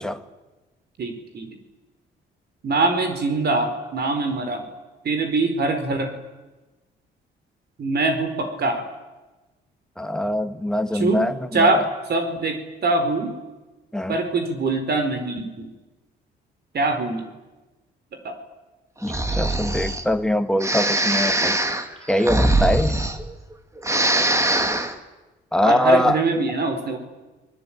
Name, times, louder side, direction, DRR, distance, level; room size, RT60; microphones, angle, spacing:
voice 1, 1.0-1.5 2.6-4.6 5.0-6.1 7.8-8.8 10.9-11.3 11.5-13.3 14.1-15.7 16.7-17.2 18.2-18.3 25.6-27.0, right 3 dB, 55° right, 4.5 m, -23 dB
voice 2, 10.0-11.7 13.9-14.1 19.0-21.6 22.1-23.0 25.5-26.2, left 1 dB, 5° left, 1.8 m, -22 dB
Breathing, 19.0-20.0 20.6-23.5 23.8-24.9, right 2 dB, 15° right, 2.3 m, -22 dB
29.0 x 20.5 x 8.9 m
cardioid pair, 90°, 20 cm